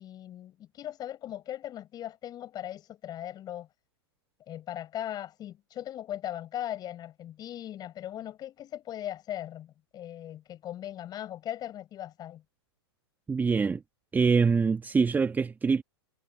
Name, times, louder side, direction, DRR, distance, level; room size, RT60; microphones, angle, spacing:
voice 1, 0.0-3.7 4.5-12.4, left 12 dB, 30° left, 5.1 m, -39 dB
voice 2, 13.3-13.8 14.1-15.8, right 5 dB, 15° right, 1.3 m, -24 dB
hypercardioid pair, 110°, 14 cm